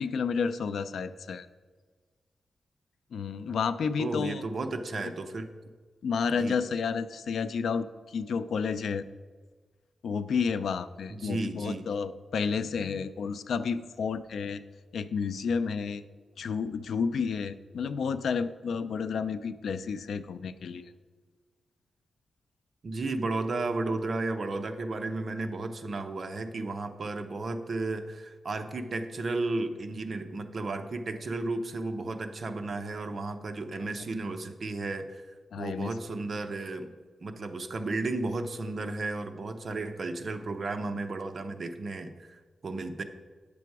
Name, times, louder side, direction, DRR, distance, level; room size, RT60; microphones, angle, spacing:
voice 1, 0.0-1.5 3.1-4.4 6.0-9.1 10.0-14.6 14.9-16.0 16.4-20.9 35.5-35.9, left 5 dB, 85° left, 12 dB, 0.4 m, -31 dB
voice 2, 4.0-5.5 6.4-6.6 11.1-11.9 22.8-35.2 35.6-36.9 37.2-43.0, right 2 dB, 45° right, 7 dB, 0.7 m, -33 dB
9.4 x 6.9 x 4.6 m, 1.4 s
wide cardioid pair, 145°, 0 cm